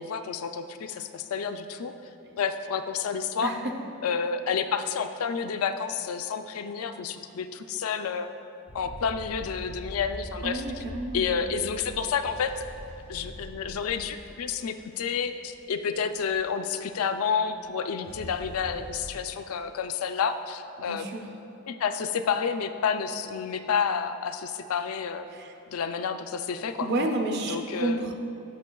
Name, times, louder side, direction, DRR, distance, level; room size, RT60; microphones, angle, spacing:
voice 1, 0.0-2.0 2.4-3.5 4.0-8.3 8.7-10.8 11.1-12.7 13.1-21.1 21.7-25.3 25.7-26.9 27.5-28.1, left 6 dB, 85° left, 8 dB, 0.4 m, -30 dB
sound 1, 8.7-16.5 18.0-19.1, equal, 75° right, 1.5 m, -43 dB
voice 2, 10.4-11.3 20.9-21.2 25.3-25.5 26.8-28.1, right 2 dB, 50° right, 3 dB, 0.6 m, -30 dB
11.5 x 6.4 x 2.3 m, 2.7 s
head